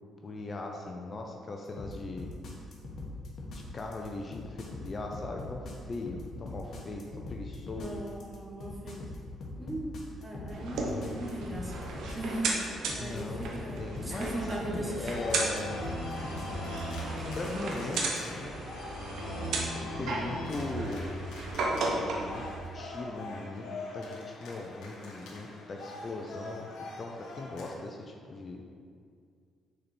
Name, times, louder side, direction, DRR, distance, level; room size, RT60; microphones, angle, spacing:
voice 1, 0.2-2.3 3.5-5.6 5.9-7.0 7.3-8.0 13.0-15.8 17.2-18.5 19.7-21.1 21.8-22.4 22.7-23.6 23.9-26.6 27.0-28.6, left 3 dB, 40° left, 1 dB, 0.6 m, -39 dB
sound 1, 1.8-17.5, left 2 dB, 60° left, 1.2 m, -42 dB
voice 2, 7.8-9.0 9.6-9.9 10.2-15.2, right 1 dB, 15° right, -3 dB, 1.4 m, -38 dB
sound 2, 10.5-22.6, right 3 dB, 80° right, 1.0 m, -35 dB
sound 3, 15.0-27.8, left 2 dB, 80° left, 1.1 m, -41 dB
6.4 x 4.3 x 4.4 m, 2.2 s
cardioid pair, 90°, 0 cm